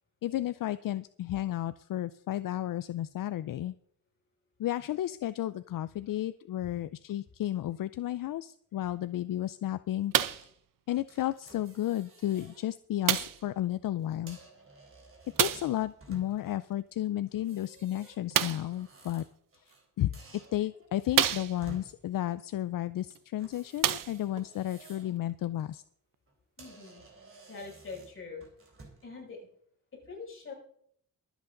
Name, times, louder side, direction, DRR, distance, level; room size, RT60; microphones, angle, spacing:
voice 1, 0.2-3.7 4.6-10.5 10.9-14.4 15.4-19.2 20.0-20.2 20.5-25.8, left 13 dB, 70° left, 14 dB, 0.5 m, -33 dB
sound 1, 10.1-10.5 11.4-11.5 13.1-13.5 15.4-15.8 18.3-18.7 19.7-19.8 20.4-20.5 21.1-21.8 23.1-23.2 23.7-24.5 25.3-25.4, right 10 dB, 70° right, 0.7 m, -28 dB
sound 2, 11.1-12.6 13.1-13.3 14.1-16.6 17.3-19.9 20.1-21.9 23.4-25.2 25.6-25.8 26.3-26.4 26.6-29.1, right 2 dB, 40° right, 3.4 m, -54 dB
voice 2, 26.6-27.0 27.5-28.4 29.0-29.5 29.9-30.5, left 4 dB, 35° left, -3 dB, 6.2 m, -44 dB
23.5 x 8.2 x 3.8 m, 0.65 s
wide cardioid pair, 165°, 34 cm